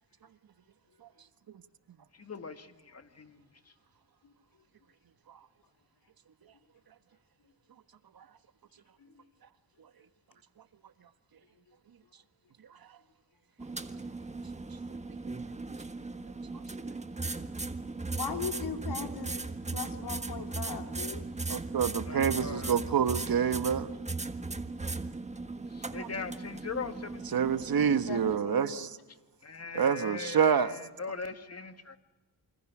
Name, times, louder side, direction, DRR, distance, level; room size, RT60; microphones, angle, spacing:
voice 1, 2.2-3.4 22.1-22.8 25.7-27.5 29.4-32.0, left 5 dB, 40° left, 2.1 m, -40 dB
sound 1, 13.6-28.4, right 3 dB, 15° right, 1.5 m, -38 dB
voice 2, 18.1-21.2 28.1-28.9, left 6 dB, 70° left, 4.0 m, -39 dB
voice 3, 21.5-23.9 26.0-26.1 27.3-28.9 29.7-30.7, right 7 dB, 60° right, 1.4 m, -27 dB
28.5 x 26.0 x 6.2 m
cardioid pair, 80°, 40 cm